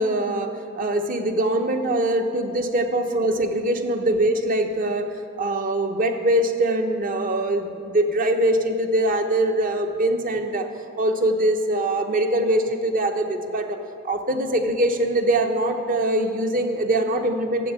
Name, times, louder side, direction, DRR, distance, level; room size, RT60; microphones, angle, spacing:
voice 1, 0.0-5.1 5.4-10.7 11.0-13.8 14.0-17.7, right 1 dB, 40° right, 6 dB, 0.7 m, -23 dB
7.3 x 7.0 x 7.0 m, 2.7 s
head